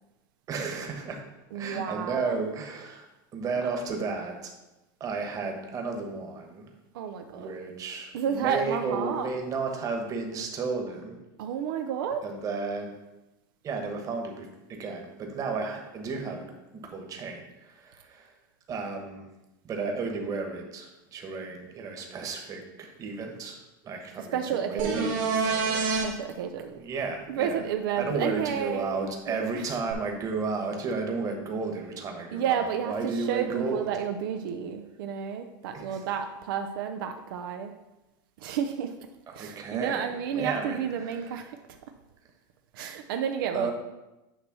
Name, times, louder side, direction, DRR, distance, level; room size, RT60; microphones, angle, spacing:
voice 1, 0.5-1.2 1.5-3.1 3.3-4.5 5.0-6.7 7.3-11.2 12.2-12.9 13.6-18.3 18.7-19.2 19.6-23.6 23.8-25.9 26.8-27.6 28.0-33.9 35.7-36.0 39.3-41.4 43.5-43.7, right 4 dB, 30° right, 3 dB, 1.3 m, -33 dB
voice 2, 1.5-2.4 6.9-7.5 8.1-9.3 11.4-12.2 24.2-25.3 26.0-26.8 27.3-29.7 32.3-37.7 38.4-38.9 39.3-41.6 42.7-43.7, right 8 dB, 80° right, 6 dB, 0.6 m, -31 dB
sound 1, 24.8-26.0 29.9-30.0, right 4 dB, 60° right, 2.2 m, -26 dB
9.0 x 3.2 x 6.0 m, 1.0 s
supercardioid pair, 135°, 11 cm